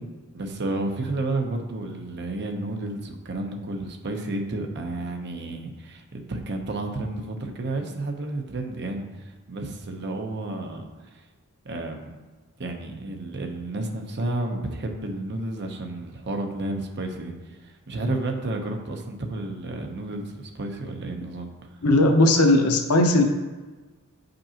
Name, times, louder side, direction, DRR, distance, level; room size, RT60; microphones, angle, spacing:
voice 1, 0.3-11.2 11.6-12.1 12.6-21.5, right 2 dB, 50° right, 3 dB, 0.8 m, -31 dB
voice 2, 21.8-23.2, left 2 dB, 85° left, 4 dB, 0.8 m, -18 dB
7.9 x 5.2 x 2.9 m, 1.3 s
head